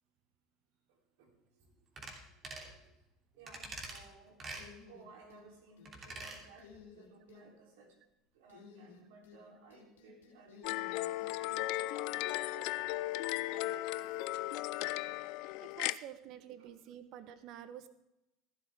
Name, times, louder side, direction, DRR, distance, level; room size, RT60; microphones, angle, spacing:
voice 1, 0.9-1.7 2.2-3.0 3.4-4.4 4.8-8.0 8.3-14.3 14.9-15.1 16.6-16.7, right 4 dB, 75° right, 0 dB, 3.5 m, -59 dB
sound 1, 2.0-2.2 2.4-2.7 3.5-4.0 4.4-4.7 5.9-6.4 6.7-6.8, right 3 dB, 35° right, 3.0 m, -45 dB
sound 2, 4.6-5.5 5.8-6.2 6.6-7.4 8.5-9.4 9.7-11.3, left 6 dB, 80° left, 2.5 m, -56 dB
sound 3, 10.6-16.0, left 17 dB, 65° left, 0.4 m, -36 dB
voice 2, 15.6-17.9, right 10 dB, 55° right, 11 dB, 1.1 m, -49 dB
15.0 x 12.0 x 3.6 m, 0.91 s
hypercardioid pair, 75°, 0 cm